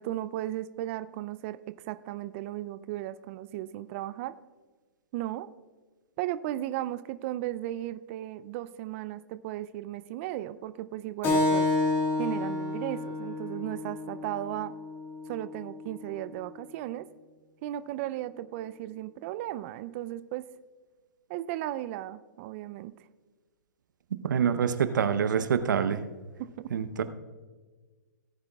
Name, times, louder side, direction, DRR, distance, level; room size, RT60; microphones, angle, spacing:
voice 1, 0.0-1.6 1.8-4.4 5.1-5.5 6.2-11.7 12.2-14.7 15.3-17.1 17.6-20.4 21.3-22.9, right 14 dB, 40° right, 14 dB, 0.4 m, -35 dB
Keyboard (musical), 11.2-16.3, left 2 dB, 20° left, 2.0 m, -30 dB
voice 2, 24.1-26.0 26.7-27.0, right 7 dB, 70° right, 11 dB, 0.8 m, -26 dB
18.0 x 9.6 x 2.3 m, 1.4 s
hypercardioid pair, 120°, 10 cm